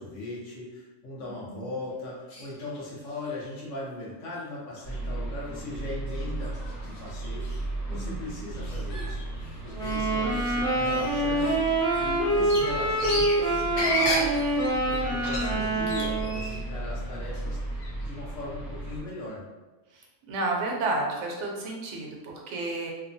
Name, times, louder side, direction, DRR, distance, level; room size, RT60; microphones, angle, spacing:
voice 1, 0.0-6.6 6.8-7.5 7.9-14.3 14.8-17.6 18.0-19.4, left 2 dB, 70° left, -5 dB, 1.1 m, -39 dB
voice 2, 1.3-1.7 7.8-8.3 19.9-22.9, right 2 dB, 75° right, -1 dB, 0.9 m, -32 dB
sound 1, 2.3-2.8 3.1-3.7 4.3-4.4 4.8-5.0 5.4-5.6 6.1-6.2 6.4-7.7 8.5-10.0 10.3-10.5 10.8-16.8 17.1-18.0, left 2 dB, 55° left, 0.7 m, -35 dB
sound 2, 4.8-19.0, right 2 dB, 40° left, 1.2 m, -35 dB
sound 3, 9.7-16.5, right 2 dB, 5° left, 0.6 m, -26 dB
2.8 x 2.1 x 2.5 m, 1.2 s
omnidirectional pair, 1.3 m